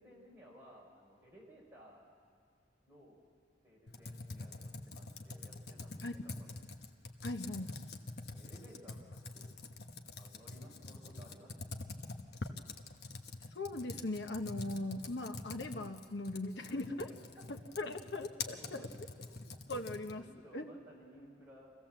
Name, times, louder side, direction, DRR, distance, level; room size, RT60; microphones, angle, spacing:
voice 1, 0.0-2.0 2.9-3.2 3.6-6.6 8.3-9.5 10.1-11.8 16.7-16.8 17.1-17.2 17.9-18.0 18.4-19.4 20.0-21.7, equal, 10° right, -4 dB, 4.9 m, -58 dB
Computer keyboard, 3.9-20.3, left 3 dB, 65° left, 1.1 m, -46 dB
voice 2, 7.2-7.8 13.5-17.1 17.8-18.9 19.7-20.2 20.5-20.7, left 2 dB, 85° left, 6 dB, 1.2 m, -39 dB
25.5 x 16.0 x 7.5 m, 2.2 s
head